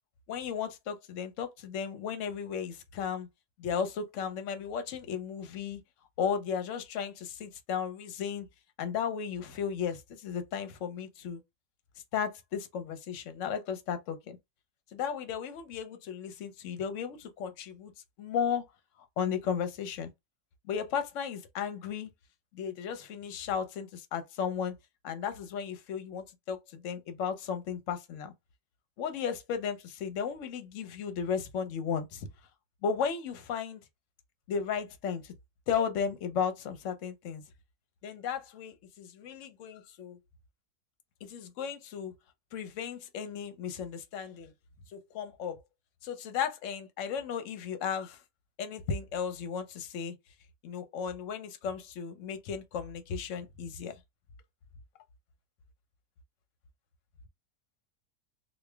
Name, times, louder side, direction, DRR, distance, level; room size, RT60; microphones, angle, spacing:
voice 1, 0.3-3.3 3.6-5.8 6.2-8.5 8.8-11.4 12.1-14.4 14.9-17.9 18.2-18.6 19.0-20.1 20.6-22.1 22.5-24.7 25.0-28.3 29.0-32.3 32.8-33.8 34.5-35.3 35.7-37.4 38.0-40.2 41.2-42.1 42.5-44.5 44.9-45.6 46.0-48.2 48.6-50.1 50.6-54.0, left 7 dB, 60° left, 0.9 m, -35 dB
3.2 x 2.4 x 3.3 m
omnidirectional pair, 1.8 m